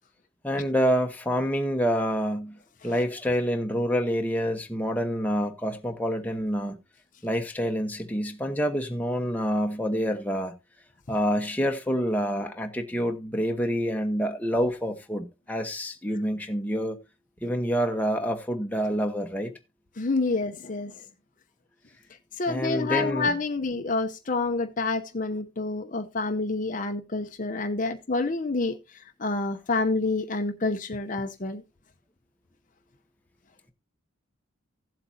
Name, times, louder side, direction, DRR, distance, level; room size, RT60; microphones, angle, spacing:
voice 1, 0.4-2.6 2.8-6.7 7.2-10.5 11.1-17.0 17.4-19.5 22.5-23.3, equal, 10° left, 1.1 m, -27 dB
voice 2, 20.0-20.9 22.4-31.6, left 3 dB, 40° left, 0.8 m, -28 dB
15.5 x 7.9 x 2.8 m
head